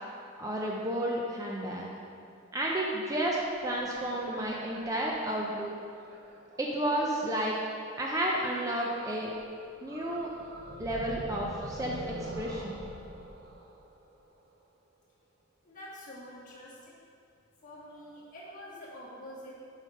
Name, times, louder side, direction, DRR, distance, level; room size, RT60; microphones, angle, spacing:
voice 1, 0.4-1.9 2.5-5.7 6.6-7.6 8.0-9.3 9.8-10.3 10.8-12.8, right 1 dB, 15° right, -2 dB, 0.5 m, -31 dB
sound 1, 3.7-7.6 8.7-9.4 9.7-14.6, right 1 dB, 45° right, 0.7 m, -45 dB
voice 2, 15.6-17.0 17.6-19.6, equal, 35° left, -7 dB, 2.0 m, -46 dB
7.6 x 5.0 x 5.3 m, 2.5 s
head